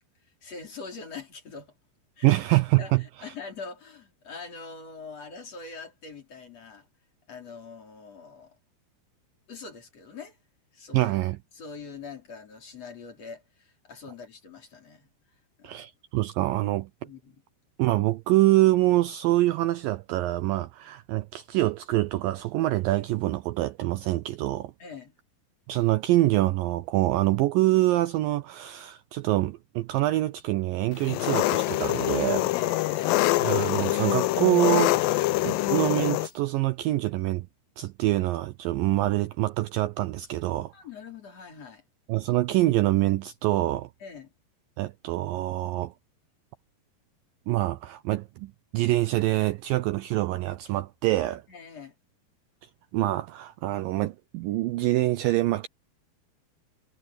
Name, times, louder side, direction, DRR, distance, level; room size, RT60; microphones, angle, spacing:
voice 1, 0.2-1.7 2.2-2.3 2.8-6.9 7.3-8.6 9.5-10.4 10.7-11.1 11.5-15.1 15.6-15.8 17.0-17.4 24.8-25.1 32.5-33.3 40.7-41.8 44.0-44.3 51.5-51.9, left 5 dB, 40° left, 5.1 m, -43 dB
voice 2, 2.2-3.0 10.9-11.4 15.6-16.9 17.8-24.7 25.7-32.5 33.4-37.5 37.8-40.7 42.1-43.9 44.8-45.9 47.5-51.4 52.9-55.7, right 16 dB, 90° right, 2.0 m, -25 dB
Engine, 31.0-36.3, left 17 dB, 85° left, 2.0 m, -25 dB
omnidirectional pair, 4.8 m